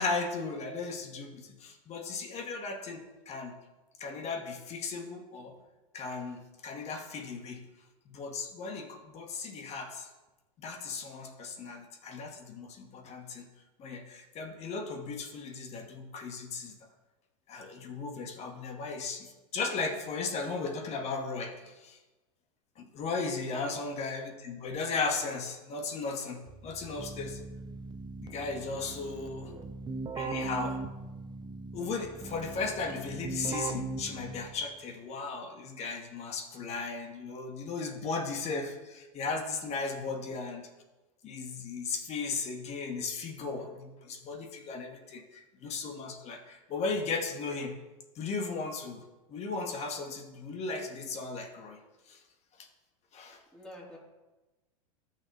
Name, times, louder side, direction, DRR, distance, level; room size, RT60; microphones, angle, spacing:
voice 1, 0.0-3.6 4.0-5.5 5.9-7.6 8.1-10.1 10.6-13.5 13.8-16.7 17.5-22.0 22.8-27.4 28.2-29.5 30.1-30.8 31.7-40.7 41.2-47.8 48.1-49.0 49.3-51.8 52.1-52.2 52.6-52.7 53.1-53.4, left 4 dB, 35° left, 3 dB, 1.4 m, -36 dB
Keyboard (musical), 26.5-34.8, right 3 dB, 25° right, 0.8 m, -40 dB
voice 2, 53.5-54.0, left 1 dB, 5° left, -4 dB, 3.1 m, -50 dB
13.5 x 6.0 x 3.1 m, 1.1 s
hypercardioid pair, 105°, 18 cm